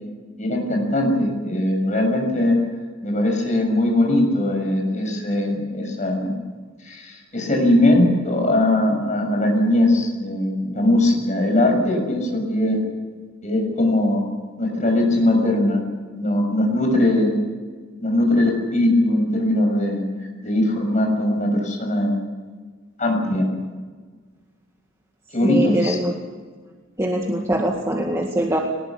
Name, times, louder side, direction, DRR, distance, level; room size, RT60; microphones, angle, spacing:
voice 1, 0.4-2.6 3.0-6.4 6.8-12.9 13.4-14.3 14.6-15.8 16.2-17.4 18.0-20.0 20.4-22.2 23.0-23.5 25.3-26.0, left 1 dB, 35° left, 3 dB, 6.7 m, -20 dB
voice 2, 25.4-26.1 27.0-28.6, right 1 dB, 15° right, 0 dB, 1.9 m, -22 dB
23.0 x 20.0 x 8.5 m, 1.5 s
head